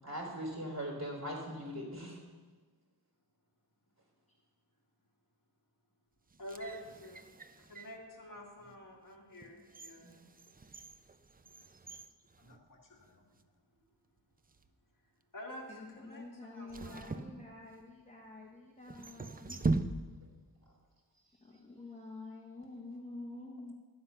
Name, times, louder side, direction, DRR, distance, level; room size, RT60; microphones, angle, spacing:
voice 1, 0.0-2.2 9.5-9.6 10.0-10.1, equal, 40° right, 0 dB, 3.5 m, -40 dB
sound 1, 6.3-8.0 8.7-8.8 9.3-13.1 13.4-13.5 14.3-14.7 16.7-18.0 18.8-20.4 20.7-20.8, right 3 dB, 20° right, 0.5 m, -40 dB
voice 2, 6.4-10.1 12.4-13.2 15.3-15.7 16.0-17.3, equal, 50° left, -1 dB, 2.4 m, -49 dB
voice 3, 15.7-19.6 21.4-23.7, left 2 dB, 15° left, -2 dB, 1.4 m, -48 dB
12.5 x 9.7 x 5.6 m, 1.3 s
wide cardioid pair, 105°, 40 cm